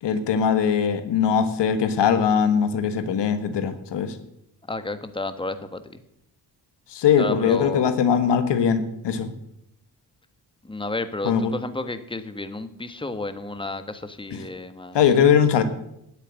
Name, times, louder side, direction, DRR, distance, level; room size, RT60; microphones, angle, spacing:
voice 1, 0.0-4.2 6.9-9.3 11.2-11.5 14.3-14.4 14.9-15.6, left 7 dB, 85° left, 10 dB, 1.4 m, -21 dB
voice 2, 4.7-6.0 7.2-7.8 10.6-15.0, left 2 dB, 10° left, 10 dB, 1.4 m, -32 dB
10.0 x 8.3 x 9.8 m, 0.81 s
cardioid pair, 65°, 41 cm